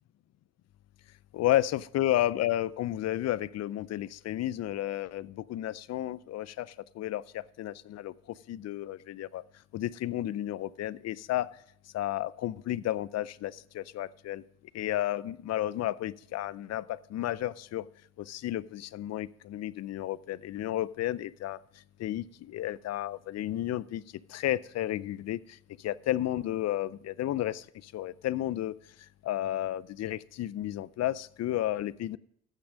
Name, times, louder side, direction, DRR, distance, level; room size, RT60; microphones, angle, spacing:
voice 1, 1.3-8.1 8.5-9.4 9.7-11.5 11.9-14.4 14.7-17.9 18.2-21.6 22.0-24.0 24.3-28.7 29.2-32.2, left 13 dB, 60° left, 20 dB, 0.5 m, -32 dB
15.0 x 6.1 x 5.1 m, 0.68 s
cardioid pair, 90°, 30 cm